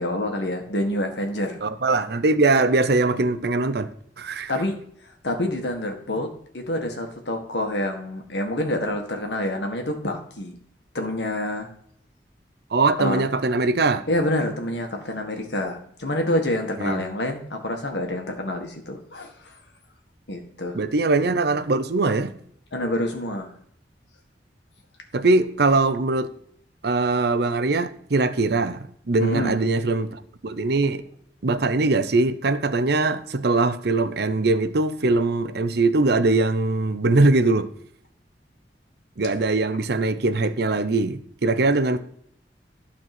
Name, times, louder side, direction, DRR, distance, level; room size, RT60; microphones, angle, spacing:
voice 1, 0.0-1.6 4.5-4.8 5.2-6.3 6.5-10.6 10.9-11.7 13.0-13.2 14.1-19.5 20.3-20.8 22.7-23.6 29.2-29.5, left 1 dB, 75° left, 1.8 m, -27 dB
voice 2, 1.6-3.9 4.2-4.5 12.7-14.0 16.8-17.0 20.7-22.3 25.1-26.3 26.8-31.0 31.4-37.7 39.2-42.0, right 3 dB, 65° right, 0.7 m, -21 dB
12.0 x 4.3 x 6.1 m
head